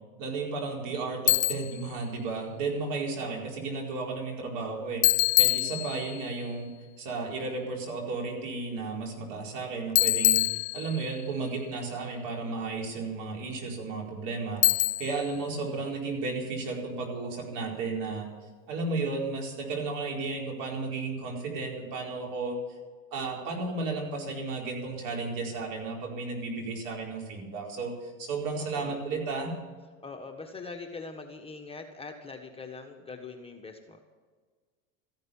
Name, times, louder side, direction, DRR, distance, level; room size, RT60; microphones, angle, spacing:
voice 1, 0.2-6.7 7.0-18.3 18.7-22.6 23.1-29.5, right 3 dB, 55° right, 0 dB, 4.6 m, -33 dB
Bicycle, 1.3-1.8 5.0-6.3 10.0-11.2 14.6-15.3, left 15 dB, 85° left, 0.5 m, -24 dB
voice 2, 28.6-29.0 30.0-34.0, left 4 dB, 15° left, 3 dB, 1.4 m, -42 dB
14.5 x 11.0 x 7.2 m, 1.5 s
hypercardioid pair, 100°, 40 cm